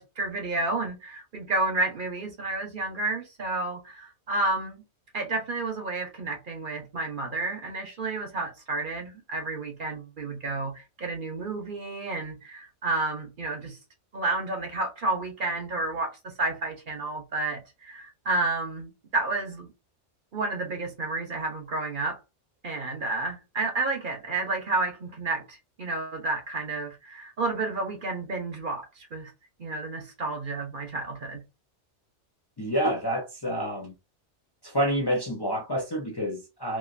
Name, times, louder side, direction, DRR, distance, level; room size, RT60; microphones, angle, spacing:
voice 1, 0.0-4.8 5.1-13.8 14.1-19.7 20.3-22.2 22.6-29.3 29.6-31.4, right 2 dB, 50° right, 0.8 m, -31 dB
voice 2, 32.6-33.9 34.6-36.8, equal, 30° left, 0.5 m, -28 dB
3.0 x 2.5 x 2.5 m
omnidirectional pair, 1.2 m